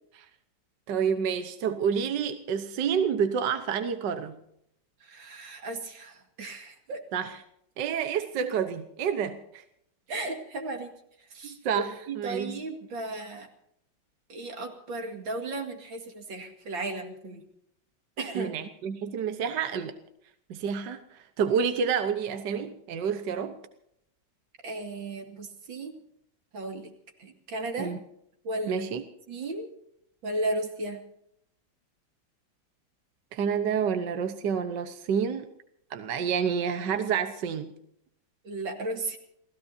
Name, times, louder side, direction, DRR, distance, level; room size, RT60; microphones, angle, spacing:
voice 1, 0.9-4.4 7.1-7.4 7.8-9.6 11.4-12.6 18.3-20.0 20.5-23.6 27.8-28.0 28.7-29.0 33.3-35.5 35.9-37.8, right 7 dB, 70° right, 8 dB, 1.6 m, -29 dB
voice 2, 5.1-7.0 10.1-10.9 11.3-11.6 12.1-13.5 14.3-17.4 18.2-18.5 24.6-25.9 26.5-26.9 27.2-27.9 28.4-28.8 29.3-29.7 30.2-31.0 38.4-39.2, right 2 dB, 90° right, 4 dB, 3.0 m, -35 dB
29.5 x 16.5 x 2.7 m, 0.74 s
omnidirectional pair, 2.0 m